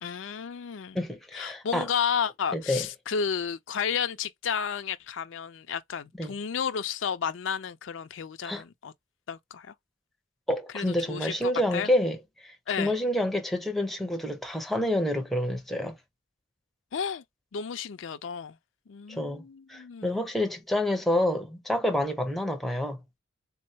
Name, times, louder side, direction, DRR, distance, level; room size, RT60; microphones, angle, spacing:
voice 1, 0.0-1.0 1.3-8.9 9.3-9.7 10.7-11.9 12.7-12.9 16.9-17.2 17.5-18.6 18.9-20.3, left 7 dB, 65° left, 0.4 m, -32 dB
voice 2, 0.9-1.9 2.5-2.9 6.2-6.3 8.4-8.6 10.5-12.2 12.4-16.0 19.1-19.4 19.7-23.0, left 1 dB, ahead, 0.6 m, -28 dB
3.8 x 2.0 x 2.7 m
head